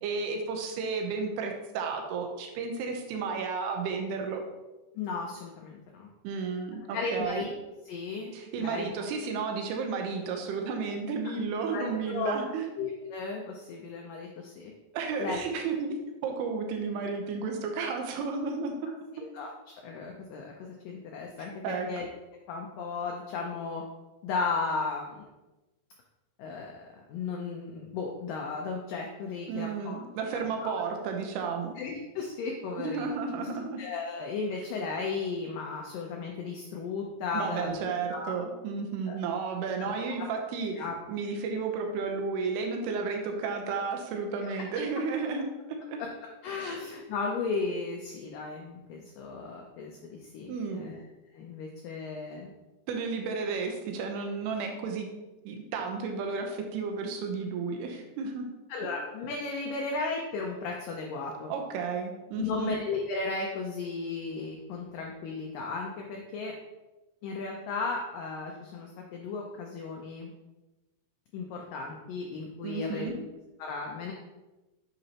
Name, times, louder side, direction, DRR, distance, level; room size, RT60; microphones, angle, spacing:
voice 1, 0.0-4.4 6.2-7.5 8.3-12.7 14.9-15.9 16.2-18.9 21.4-21.9 29.5-31.8 32.8-33.8 37.3-40.8 41.1-46.0 46.6-46.8 50.5-50.9 52.9-55.1 55.4-58.5 61.5-62.7 72.6-73.2, right 5 dB, 75° right, 3 dB, 2.8 m, -33 dB
voice 2, 5.0-6.1 6.9-7.5 7.9-8.3 8.6-8.9 11.2-11.4 11.7-12.4 12.8-14.7 15.2-15.4 19.1-19.5 19.8-22.1 22.5-23.8 24.2-25.3 26.4-30.0 30.3-30.8 31.8-33.1 33.8-37.8 38.1-38.3 39.1-39.2 39.8-39.9 40.7-41.0 44.4-44.6 46.0-46.1 46.4-51.0 51.3-52.5 58.7-61.5 62.4-66.5 67.2-70.3 71.3-73.2 73.6-74.1, left 4 dB, 85° left, 0 dB, 1.9 m, -35 dB
8.1 x 7.0 x 2.9 m, 1.1 s
omnidirectional pair, 4.9 m